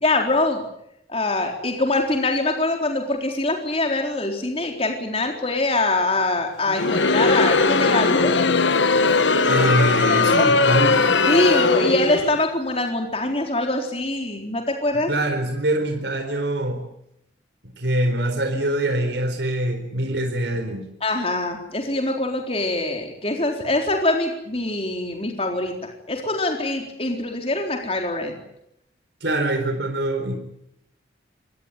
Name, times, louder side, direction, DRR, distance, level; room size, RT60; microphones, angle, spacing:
voice 1, 0.0-0.6 1.1-8.3 10.4-10.7 11.3-15.1 21.0-28.4, left 2 dB, 30° left, 3 dB, 4.1 m, -24 dB
Crowd, 6.7-12.4, left 3 dB, 75° left, 1.3 m, -19 dB
voice 2, 9.5-11.0 15.1-16.8 17.8-20.8 29.2-30.3, right 1 dB, 65° right, 5 dB, 4.2 m, -24 dB
25.5 x 19.5 x 9.2 m, 0.79 s
head